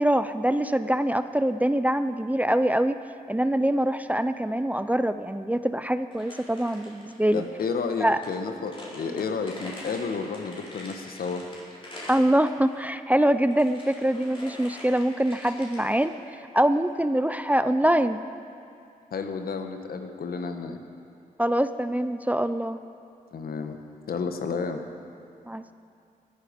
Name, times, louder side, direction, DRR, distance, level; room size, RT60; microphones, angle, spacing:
voice 1, 0.0-3.0 3.3-7.4 8.0-8.2 12.1-16.2 16.5-18.2 21.4-22.8 25.5-25.7, right 1 dB, 10° right, 11 dB, 0.5 m, -24 dB
sound 1, 6.1-12.8 13.3-16.3, left 1 dB, 35° left, 4.6 m, -45 dB
voice 2, 7.3-11.4 19.1-20.8 23.3-23.8 24.1-24.8, left 5 dB, 75° left, 6 dB, 1.3 m, -31 dB
19.0 x 11.0 x 5.2 m, 2.5 s
cardioid pair, 65°, 16 cm